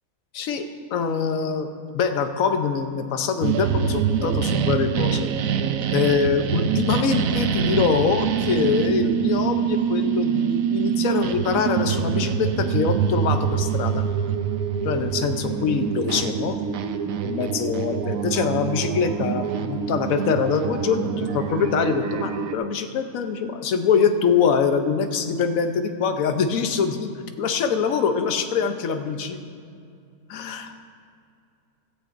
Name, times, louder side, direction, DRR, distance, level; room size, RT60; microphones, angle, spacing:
voice 1, 0.3-0.6 0.9-1.7 1.9-5.3 5.9-14.0 14.8-16.6 17.2-27.1 27.4-29.4 30.3-30.8, left 6 dB, 65° left, 7 dB, 1.2 m, -24 dB
sound 1, 3.4-22.5, right 8 dB, 65° right, 1.0 m, -25 dB
16.5 x 14.0 x 2.6 m, 2.4 s
omnidirectional pair, 1.7 m